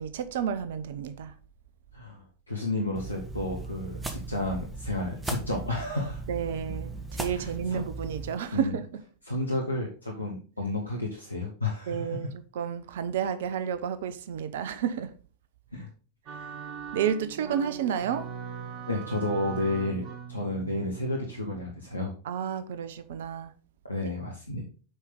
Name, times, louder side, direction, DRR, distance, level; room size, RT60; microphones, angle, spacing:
voice 1, 0.0-1.3 6.3-9.0 11.9-15.1 16.3-16.4 16.9-18.3 22.2-23.5 24.0-24.1, right 8 dB, 55° right, 0.8 m, -31 dB
voice 2, 1.9-6.2 7.3-7.8 8.5-8.7 9.3-12.1 15.7-15.9 18.9-22.1 23.9-24.6, left 2 dB, 85° left, 1.3 m, -31 dB
sound 1, 3.0-8.4, right 3 dB, 10° right, 1.4 m, -38 dB
sound 2, 16.3-22.0, right 7 dB, 35° right, 1.1 m, -41 dB
8.2 x 5.1 x 3.7 m
figure-of-eight pair, 90°, 0 cm